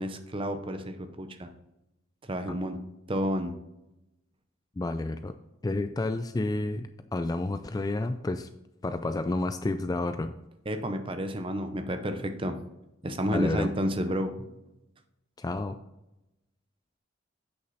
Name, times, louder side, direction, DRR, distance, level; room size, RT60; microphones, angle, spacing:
voice 1, 0.0-1.5 2.3-2.8 3.1-3.5 10.7-12.6 13.0-14.5, equal, 25° right, 8 dB, 0.7 m, -31 dB
voice 2, 4.8-5.3 5.6-8.5 8.8-10.3 13.3-13.7 15.4-15.8, left 2 dB, 20° left, 9 dB, 0.3 m, -30 dB
8.3 x 6.4 x 4.0 m, 0.92 s
head